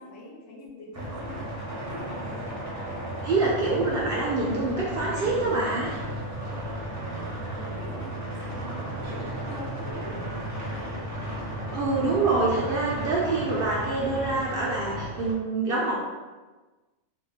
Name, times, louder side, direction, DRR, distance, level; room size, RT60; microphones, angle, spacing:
voice 1, 0.0-2.6 7.5-11.4, left 2 dB, 70° left, -3 dB, 1.0 m, -44 dB
sound 1, 0.9-15.3, right 1 dB, 20° right, 0.6 m, -35 dB
voice 2, 3.2-5.9 11.7-16.0, right 3 dB, 60° right, -4 dB, 0.6 m, -26 dB
sound 2, 3.4-14.3, right 2 dB, 85° right, 1.1 m, -44 dB
3.4 x 2.3 x 2.8 m, 1.2 s
omnidirectional pair, 1.4 m